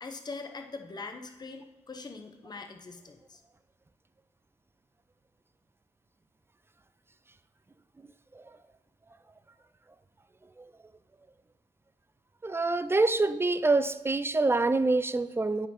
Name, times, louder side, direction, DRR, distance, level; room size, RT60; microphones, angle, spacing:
voice 1, 0.0-3.4, left 3 dB, 30° left, 5 dB, 0.8 m, -42 dB
voice 2, 12.4-15.7, right 3 dB, 15° right, 13 dB, 0.4 m, -26 dB
9.7 x 4.6 x 4.3 m, 1.1 s
cardioid pair, 75°, 14 cm